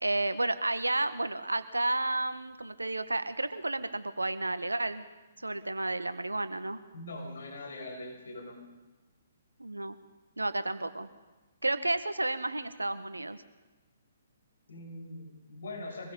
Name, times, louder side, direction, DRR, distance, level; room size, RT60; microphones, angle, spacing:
voice 1, 0.0-5.0 5.4-6.8 9.6-10.0 10.4-11.1 11.6-13.4, right 2 dB, 80° right, 11 dB, 1.5 m, -31 dB
voice 2, 6.9-8.6 14.7-16.1, left 2 dB, 60° left, -1 dB, 7.4 m, -42 dB
24.5 x 21.0 x 5.4 m, 1.2 s
figure-of-eight pair, 125°, 0 cm